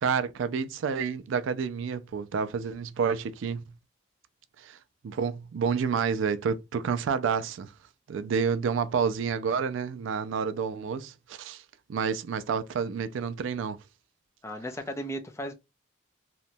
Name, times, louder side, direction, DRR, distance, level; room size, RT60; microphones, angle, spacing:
voice 1, 0.0-3.6 4.6-4.8 5.0-7.7 8.1-11.6 11.9-13.8, right 6 dB, 75° right, 0.3 m, -29 dB
voice 2, 14.4-15.5, equal, 15° left, 0.4 m, -35 dB
2.9 x 2.1 x 2.6 m
head